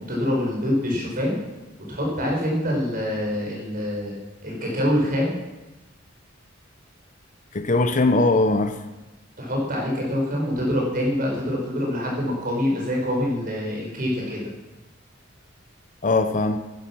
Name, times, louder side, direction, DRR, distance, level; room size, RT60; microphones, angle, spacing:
voice 1, 0.1-1.4 1.9-5.3 9.4-14.4, left 1 dB, 45° right, -2 dB, 5.6 m, -25 dB
voice 2, 7.5-8.9 16.0-16.6, left 2 dB, 40° left, 9 dB, 0.8 m, -20 dB
14.5 x 12.0 x 6.2 m, 1.0 s
head